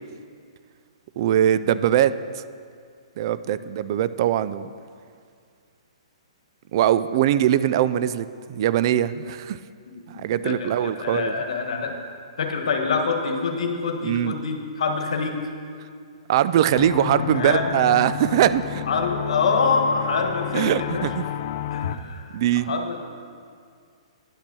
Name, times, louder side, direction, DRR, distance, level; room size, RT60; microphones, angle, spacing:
voice 1, 1.2-2.1 3.2-4.7 6.7-9.6 10.1-11.3 14.0-14.3 16.3-18.8 20.5-21.2 22.3-22.7, right 11 dB, 45° right, 15 dB, 0.3 m, -21 dB
voice 2, 9.9-12.0 12.4-15.4 17.3-17.7 18.9-21.1 21.7-23.0, left 4 dB, 70° left, 4 dB, 1.3 m, -26 dB
sound 1, 16.7-22.0, left 11 dB, 50° left, 0.4 m, -31 dB
10.0 x 6.0 x 6.1 m, 2.2 s
hypercardioid pair, 145°, 3 cm